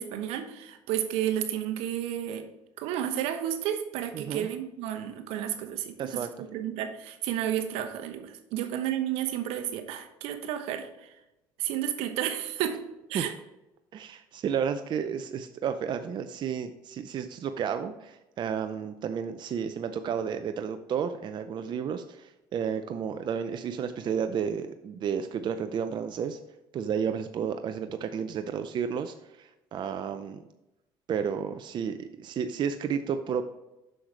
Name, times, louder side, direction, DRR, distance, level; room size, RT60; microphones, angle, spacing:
voice 1, 0.0-2.5 2.8-11.1 11.6-12.8 13.1-13.3, right 10 dB, 80° right, 7 dB, 1.0 m, -32 dB
voice 2, 4.1-4.5 6.0-6.3 13.1-13.2 13.9-26.4 26.7-30.4 31.1-33.4, right 7 dB, 50° right, 8 dB, 0.5 m, -32 dB
7.8 x 6.3 x 3.3 m, 0.95 s
supercardioid pair, 85°, 10 cm